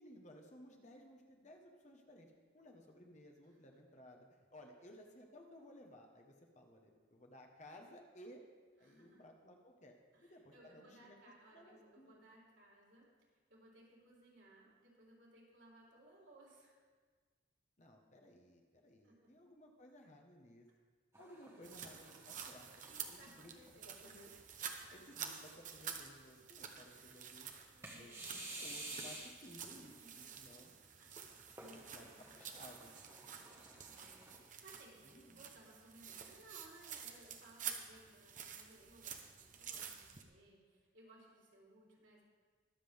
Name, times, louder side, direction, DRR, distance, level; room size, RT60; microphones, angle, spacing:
voice 1, 0.0-8.4 8.8-11.2 11.5-12.1 17.8-20.7 21.2-22.7 23.3-23.5 23.9-24.3 24.9-27.5 28.0-30.8 31.7-32.9 35.0-35.4, left 1 dB, 35° left, 2 dB, 1.3 m, -58 dB
voice 2, 8.8-9.2 10.1-13.1 13.5-16.8 19.0-19.3 21.5-22.2 22.9-24.1 24.6-25.0 26.9-27.3 27.7-28.6 30.0-30.3 31.0-32.3 33.1-42.2, right 1 dB, 70° right, -4 dB, 3.8 m, -63 dB
sound 1, 21.1-23.7 24.3-24.4 25.1-25.7 27.8-29.6 31.5-34.4, right 2 dB, 15° right, 1.5 m, -52 dB
sound 2, 21.6-40.2, right 7 dB, 40° right, 0.9 m, -50 dB
22.5 x 7.6 x 3.6 m, 1.5 s
head